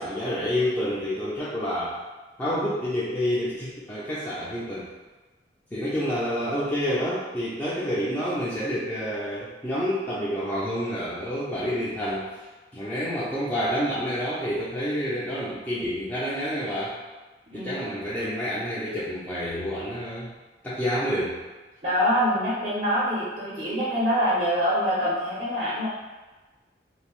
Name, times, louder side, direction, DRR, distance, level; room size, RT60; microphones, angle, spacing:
voice 1, 0.0-2.0 2.4-4.9 5.7-12.5 12.7-17.0 17.5-20.3 20.6-21.4, equal, 10° left, -10 dB, 0.3 m, -28 dB
voice 2, 21.8-25.9, equal, 45° right, -8 dB, 0.5 m, -25 dB
2.5 x 2.0 x 2.9 m, 1.2 s
head